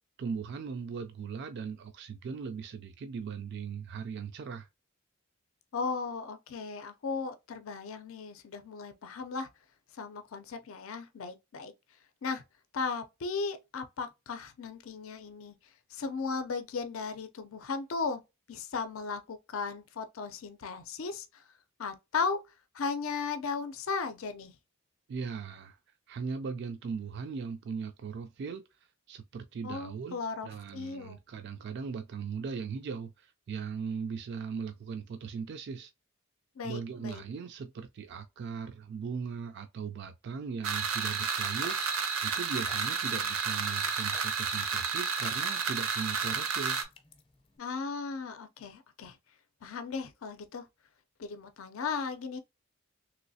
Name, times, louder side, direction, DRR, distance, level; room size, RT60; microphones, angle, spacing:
voice 1, 0.2-4.7 25.1-25.8 26.1-28.6 29.1-35.9 36.6-46.8, right 5 dB, 55° right, 0.3 m, -39 dB
voice 2, 5.7-9.5 9.9-11.7 12.2-12.4 12.7-15.5 15.9-18.2 18.5-21.4 21.8-22.4 22.7-24.5 29.6-31.2 36.6-37.2 47.6-49.2 49.6-50.6 51.2-52.4, left 4 dB, 75° left, 0.5 m, -36 dB
sound 1, 40.6-46.8, right 5 dB, 85° right, 0.7 m, -31 dB
sound 2, 41.6-47.6, left 4 dB, 25° left, 0.5 m, -49 dB
3.1 x 3.0 x 2.7 m
head